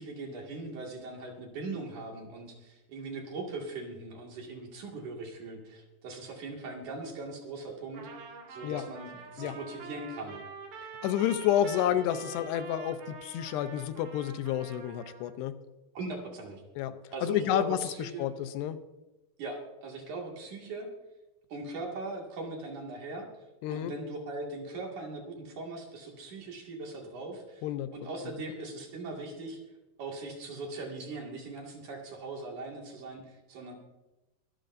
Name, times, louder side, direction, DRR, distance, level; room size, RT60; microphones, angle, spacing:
voice 1, 0.0-8.1 8.5-10.4 15.9-16.6 17.1-18.3 19.4-20.9 21.5-23.3 23.7-27.7 27.9-29.6 30.0-33.7, right 2 dB, 55° right, 0 dB, 3.3 m, -40 dB
Trumpet, 7.9-15.3, right 5 dB, 90° right, 4.3 m, -46 dB
voice 2, 11.0-15.5 16.8-17.0 17.2-18.8 23.6-23.9 27.6-27.9 28.2-28.3, left 11 dB, 85° left, 11 dB, 2.9 m, -30 dB
24.0 x 12.0 x 2.6 m, 1.0 s
omnidirectional pair, 4.7 m